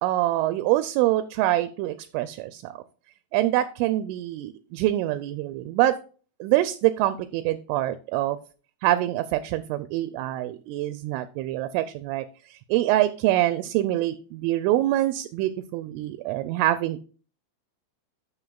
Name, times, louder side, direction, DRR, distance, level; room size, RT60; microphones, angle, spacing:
voice 1, 0.0-2.8 3.3-6.0 6.4-8.4 8.8-17.0, right 15 dB, 85° right, 12 dB, 2.9 m, -25 dB
11.0 x 7.3 x 2.3 m, 0.38 s
omnidirectional pair, 5.7 m